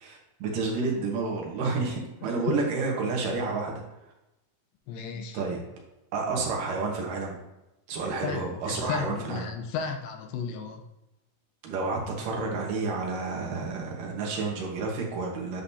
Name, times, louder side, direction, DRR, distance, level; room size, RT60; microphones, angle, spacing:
voice 1, 0.0-3.8 5.3-5.6 6.1-7.4 7.9-9.5 11.6-15.6, right 3 dB, 70° right, -1 dB, 2.8 m, -30 dB
voice 2, 4.9-5.4 8.2-10.8, left 6 dB, 85° left, 4 dB, 2.7 m, -34 dB
9.9 x 5.2 x 2.8 m, 0.96 s
omnidirectional pair, 4.2 m